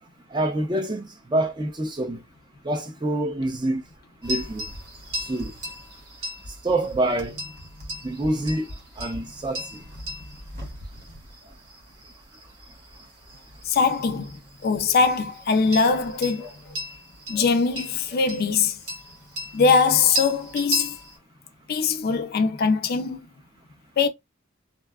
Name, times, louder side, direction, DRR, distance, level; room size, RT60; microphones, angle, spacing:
voice 1, 0.3-2.2 2.6-3.8 4.2-4.7 5.3-5.5 6.6-7.4 8.0-8.7 9.0-9.6, right 1 dB, 20° right, 0.5 m, -26 dB
sound 1, 4.2-21.2, equal, 55° right, 1.0 m, -37 dB
voice 2, 13.6-16.5 17.3-18.8 19.5-21.0 21.7-23.3 24.0-24.1, left 5 dB, 50° left, 0.4 m, -22 dB
2.7 x 2.2 x 2.3 m
head